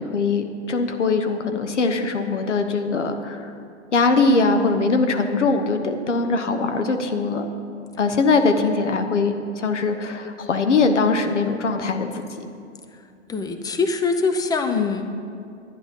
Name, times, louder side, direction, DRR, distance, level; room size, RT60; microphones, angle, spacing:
voice 1, 0.0-3.5 3.9-7.5 8.0-12.2 14.7-15.0, left 3 dB, 85° left, 6 dB, 1.1 m, -21 dB
voice 2, 13.3-15.1, left 4 dB, 10° left, 7 dB, 0.7 m, -23 dB
11.0 x 9.7 x 5.4 m, 2.5 s
hypercardioid pair, 105°, 35 cm